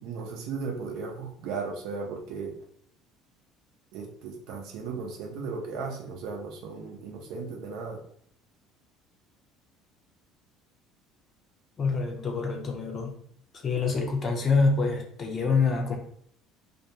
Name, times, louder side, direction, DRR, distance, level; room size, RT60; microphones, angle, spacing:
voice 1, 0.0-2.5 3.9-8.0, right 4 dB, 65° right, 1 dB, 0.6 m, -36 dB
voice 2, 11.8-13.2 13.6-16.0, left 4 dB, 40° left, 2 dB, 0.6 m, -26 dB
2.4 x 2.2 x 2.8 m, 0.64 s
hypercardioid pair, 60°, 0 cm